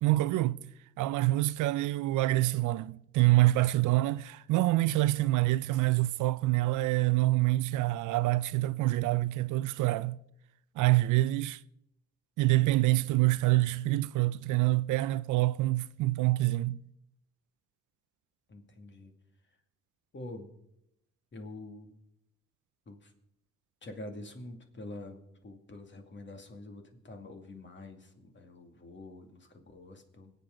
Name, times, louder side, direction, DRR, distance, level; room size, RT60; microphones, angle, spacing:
voice 1, 0.0-0.7 1.0-10.2 10.8-11.6 12.4-16.8, right 17 dB, 80° right, 0.5 m, -26 dB
voice 2, 18.5-19.1 20.1-20.5 21.3-22.0 22.9-23.1 23.8-30.3, left 2 dB, 40° left, 2.3 m, -46 dB
24.5 x 8.3 x 3.8 m
cardioid pair, 90°, 30 cm